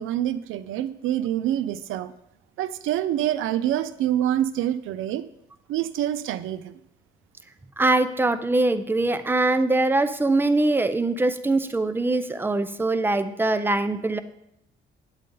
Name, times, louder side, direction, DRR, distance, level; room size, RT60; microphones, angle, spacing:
voice 1, 0.0-2.1 2.6-5.2 5.7-6.7, right 11 dB, 85° right, 14 dB, 0.5 m, -26 dB
voice 2, 7.8-14.2, right 2 dB, 10° right, 11 dB, 0.6 m, -22 dB
8.9 x 8.3 x 3.9 m, 0.78 s
cardioid pair, 90°, 20 cm